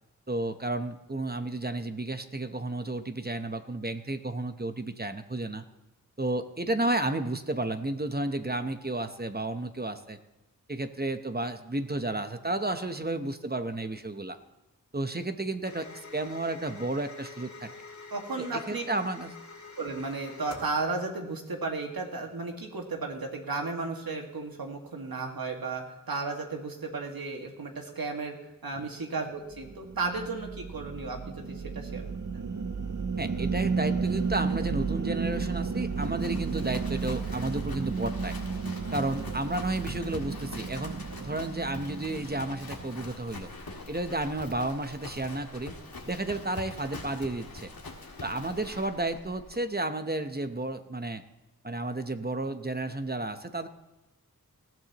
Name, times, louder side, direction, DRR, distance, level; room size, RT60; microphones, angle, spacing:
voice 1, 0.3-5.6 6.2-10.2 10.7-14.4 14.9-17.7 18.4-19.4 33.2-38.4 38.9-43.5 43.9-45.8 46.0-47.7 48.2-51.2 51.6-53.7, right 2 dB, 25° right, 8 dB, 0.9 m, -32 dB
sound 1, 15.6-20.8, left 4 dB, 55° left, 2.5 m, -46 dB
voice 2, 18.1-18.8 19.8-28.4 28.6-32.0 32.3-32.4, right 3 dB, 85° right, 2 dB, 1.9 m, -34 dB
sound 2, 29.5-43.1, right 5 dB, 55° right, 0.9 m, -33 dB
Livestock farm animals working animals, 34.0-49.6, left 2 dB, 90° left, 1.8 m, -44 dB
19.5 x 13.0 x 3.0 m, 1.0 s
wide cardioid pair, 55°, 35 cm